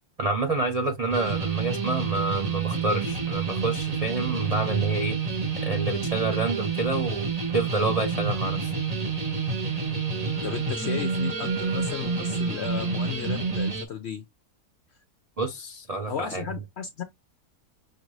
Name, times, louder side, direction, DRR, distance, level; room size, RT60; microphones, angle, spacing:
voice 1, 0.2-5.2 5.6-7.3 7.5-8.7 15.4-16.4, right 3 dB, 65° right, 0.3 m, -28 dB
sound 1, 1.1-13.8, right 5 dB, 35° right, 0.7 m, -28 dB
Wind instrument woodwind instrument, 9.9-13.8, right 6 dB, 90° right, 1.4 m, -41 dB
voice 2, 10.4-14.2 16.1-17.0, left 8 dB, 65° left, 0.6 m, -34 dB
6.4 x 2.5 x 3.1 m
omnidirectional pair, 1.7 m